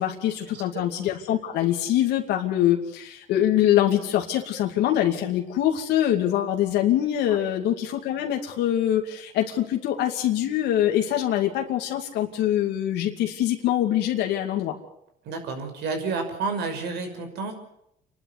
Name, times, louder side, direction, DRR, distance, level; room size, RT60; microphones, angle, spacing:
voice 1, 0.0-14.7, left 11 dB, 85° left, 2 dB, 2.6 m, -24 dB
voice 2, 15.2-17.5, right 4 dB, 80° right, 5 dB, 6.0 m, -30 dB
27.5 x 12.0 x 9.8 m, 0.78 s
cardioid pair, 110°, 17 cm